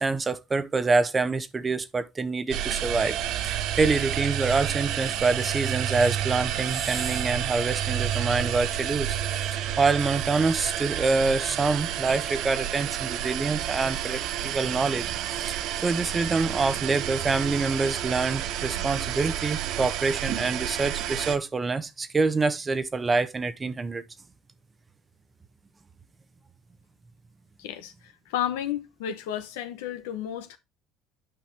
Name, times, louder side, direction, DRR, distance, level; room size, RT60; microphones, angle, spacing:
voice 1, 0.0-3.2 3.4-9.2 9.5-15.0 15.3-24.0, right 3 dB, 25° right, 1.0 m, -26 dB
sound 1, 2.5-21.4, right 11 dB, 60° right, 0.8 m, -30 dB
voice 2, 27.6-30.6, left 10 dB, 75° left, 1.1 m, -32 dB
8.9 x 5.5 x 3.4 m
hypercardioid pair, 60°, 0 cm